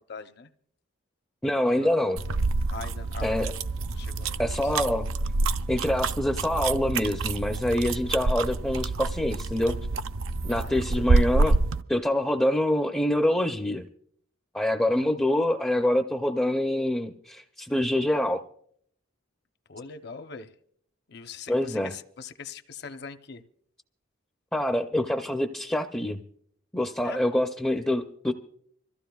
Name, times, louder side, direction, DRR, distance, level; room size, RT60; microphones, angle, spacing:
voice 1, 0.1-0.5 1.7-1.9 2.7-3.5 3.9-4.7 10.5-11.0 19.7-20.5 21.1-23.4 27.0-27.2, left 5 dB, 50° left, 0.7 m, -42 dB
voice 2, 1.4-2.2 3.2-3.5 4.4-5.1 5.7-9.8 10.4-11.6 11.9-13.8 14.5-18.4 21.5-21.9 24.5-26.2 26.7-28.3, left 1 dB, 5° left, 0.4 m, -25 dB
sound 1, 2.2-11.8, right 3 dB, 70° right, 0.5 m, -27 dB
26.0 x 14.5 x 2.3 m
head